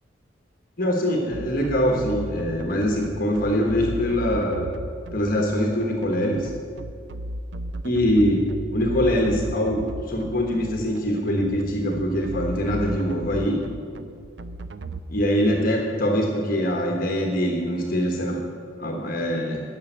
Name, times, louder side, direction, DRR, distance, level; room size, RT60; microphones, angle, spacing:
voice 1, 0.8-4.7 5.1-6.5 7.8-8.4 8.7-13.6 15.1-18.4 18.8-19.6, equal, 50° left, 1 dB, 1.3 m, -23 dB
sound 1, 1.3-15.0, right 1 dB, 65° right, 0.5 m, -35 dB
10.5 x 7.0 x 9.1 m, 2.4 s
head